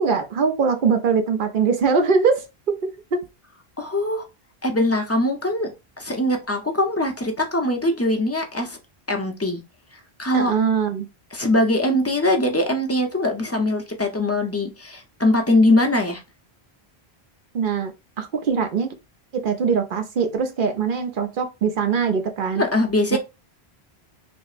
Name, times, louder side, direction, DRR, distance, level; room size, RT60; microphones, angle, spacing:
voice 1, 0.0-2.8 3.1-3.2 10.3-11.1 17.5-17.9 18.2-18.9 19.3-22.6 23.1-23.2, right 5 dB, 60° right, 0.8 m, -22 dB
voice 2, 3.8-4.2 4.6-5.7 6.0-8.8 9.1-9.6 10.2-10.5 11.3-16.2 22.5-23.2, left 1 dB, 15° left, 0.6 m, -21 dB
5.2 x 2.0 x 2.5 m
omnidirectional pair, 1.1 m